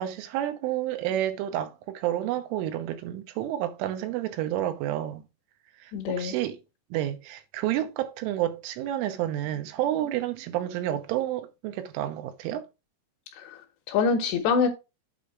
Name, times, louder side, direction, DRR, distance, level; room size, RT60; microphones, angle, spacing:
voice 1, 0.0-5.2 5.8-6.6 6.9-12.7, right 12 dB, 90° right, 3.3 m, -30 dB
voice 2, 5.9-6.3 13.4-13.6 13.9-14.7, left 5 dB, 75° left, 2.9 m, -25 dB
8.5 x 4.7 x 4.6 m
omnidirectional pair, 5.7 m